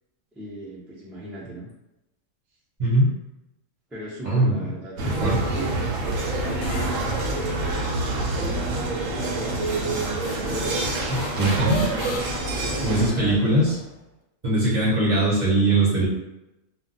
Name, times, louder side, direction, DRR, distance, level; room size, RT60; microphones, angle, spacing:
voice 1, 0.3-1.7 3.9-6.0 6.4-10.8 11.4-12.2 12.5-13.6, right 1 dB, ahead, -7 dB, 0.4 m, -37 dB
voice 2, 2.8-3.1 4.2-4.7 5.2-5.4 11.1-11.8 12.8-13.7 14.4-16.1, right 1 dB, 35° right, -6 dB, 0.9 m, -21 dB
sound 1, 5.0-13.1, right 2 dB, 75° right, 0.9 m, -27 dB
sound 2, 6.6-14.0, left 3 dB, 70° left, 0.4 m, -38 dB
2.2 x 2.2 x 3.9 m, 0.93 s
omnidirectional pair, 1.4 m